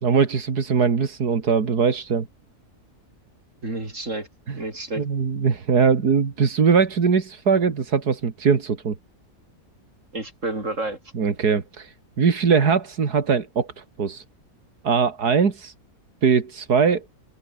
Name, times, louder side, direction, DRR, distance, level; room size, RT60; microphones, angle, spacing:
voice 1, 0.0-2.3 4.5-4.6 5.0-9.0 11.1-14.2 14.8-15.7 16.2-17.0, right 5 dB, 90° right, 2.7 m, -21 dB
voice 2, 3.6-4.3 4.6-5.1 10.1-11.0, right 2 dB, 50° right, 6.4 m, -30 dB
omnidirectional pair, 1.6 m